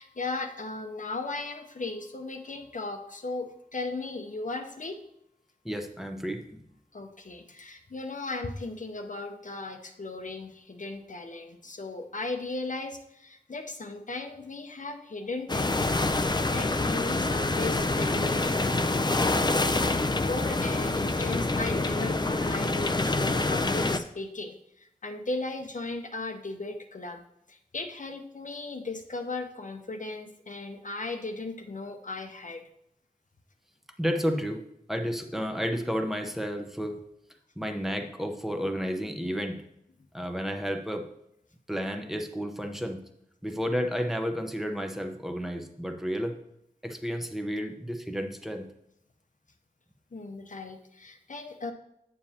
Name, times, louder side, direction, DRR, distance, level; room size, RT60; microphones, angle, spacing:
voice 1, 0.0-5.0 6.9-27.2 27.5-32.7 50.1-51.7, left 3 dB, 55° left, 5 dB, 0.8 m, -37 dB
voice 2, 5.6-6.6 34.0-34.6 34.9-37.0 37.6-39.6 40.1-41.1 41.7-43.0 43.4-46.4 46.8-48.7, equal, ahead, 4 dB, 0.8 m, -31 dB
sound 1, 15.5-24.0, left 2 dB, 30° left, 0.4 m, -26 dB
8.3 x 7.0 x 2.8 m, 0.79 s
wide cardioid pair, 55°, 15 cm